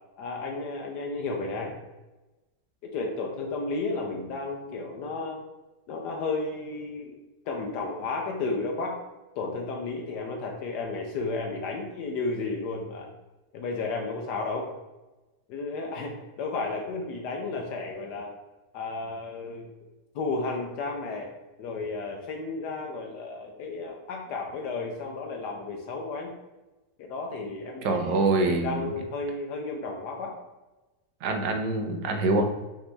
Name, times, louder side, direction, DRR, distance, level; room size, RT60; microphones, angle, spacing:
voice 1, 0.2-1.7 2.8-5.4 5.9-7.2 7.4-9.0 9.4-13.1 13.5-14.7 15.5-18.3 18.7-19.7 20.1-21.3 21.6-26.3 27.0-30.3, left 3 dB, 80° left, 1 dB, 1.3 m, -33 dB
voice 2, 27.8-28.9 31.2-32.5, right 3 dB, 80° right, 4 dB, 1.3 m, -25 dB
5.1 x 3.0 x 3.3 m, 1.1 s
omnidirectional pair, 1.8 m